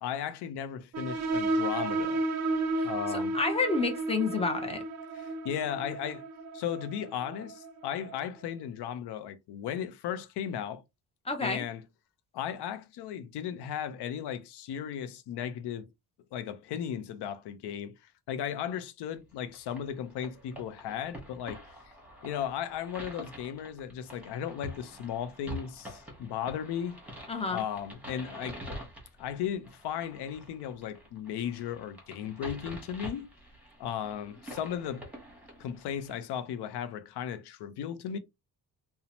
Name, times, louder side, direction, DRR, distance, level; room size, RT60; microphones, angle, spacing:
voice 1, 0.0-2.2 2.8-3.4 5.1-6.2 6.5-10.8 11.4-11.8 12.3-15.9 16.3-17.9 18.3-21.6 22.2-27.0 27.5-28.6 29.2-33.3 33.8-35.1 35.6-38.2, left 9 dB, 80° left, 0.5 m, -36 dB
sound 1, 0.9-8.2, right 2 dB, 45° right, 0.4 m, -33 dB
voice 2, 2.8-4.8 11.3-11.7 27.3-27.6, left 3 dB, 15° left, 0.4 m, -30 dB
sound 2, 19.4-36.1, equal, 5° right, 0.9 m, -46 dB
2.7 x 2.0 x 2.9 m
cardioid pair, 150°, 40 cm